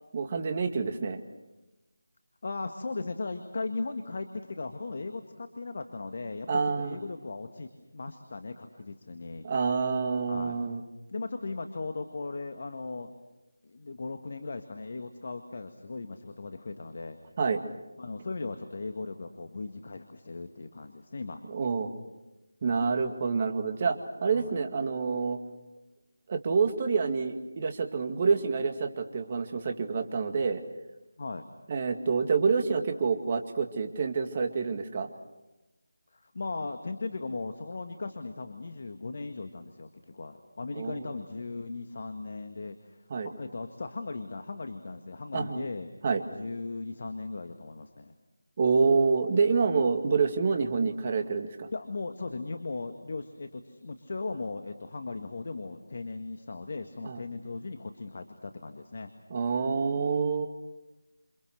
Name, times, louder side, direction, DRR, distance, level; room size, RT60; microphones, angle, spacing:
voice 1, 0.1-1.2 6.5-7.0 9.4-10.8 17.4-17.6 21.5-21.9 22.6-25.4 26.3-30.6 31.7-35.1 40.8-41.0 43.1-43.3 45.3-45.6 46.0-46.2 48.6-51.7 57.0-57.2 59.3-60.5, right 5 dB, 30° right, 6 dB, 2.2 m, -27 dB
voice 2, 2.4-9.5 10.3-10.6 11.1-13.1 13.6-17.2 18.0-21.4 22.7-22.9 24.3-24.5 31.2-31.4 36.1-45.9 46.3-48.1 51.7-59.1, left 3 dB, 50° left, 7 dB, 1.8 m, -38 dB
28.5 x 28.0 x 6.5 m, 1.1 s
figure-of-eight pair, 165°, 0 cm